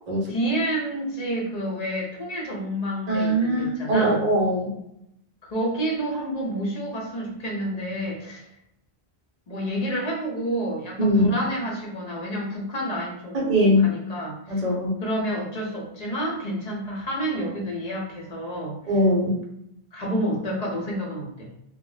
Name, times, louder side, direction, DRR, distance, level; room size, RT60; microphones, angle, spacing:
voice 1, 0.3-4.2 5.4-8.5 9.5-14.6 15.0-18.8 19.9-21.5, right 1 dB, 45° left, -2 dB, 0.7 m, -29 dB
voice 2, 3.1-4.7 11.0-11.4 13.3-13.9 14.5-14.9 18.9-19.4, equal, 45° right, -2 dB, 0.7 m, -21 dB
2.1 x 2.0 x 3.8 m, 0.79 s
omnidirectional pair, 1.1 m